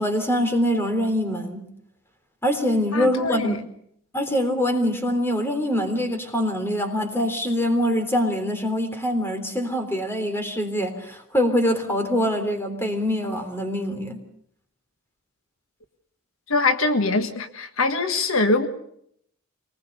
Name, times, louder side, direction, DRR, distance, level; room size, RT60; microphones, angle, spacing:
voice 1, 0.0-1.7 2.4-3.6 4.1-14.2, equal, 10° left, 3.5 m, -24 dB
voice 2, 2.9-3.6 16.5-18.7, left 3 dB, 65° left, 1.6 m, -23 dB
24.5 x 20.0 x 6.8 m
head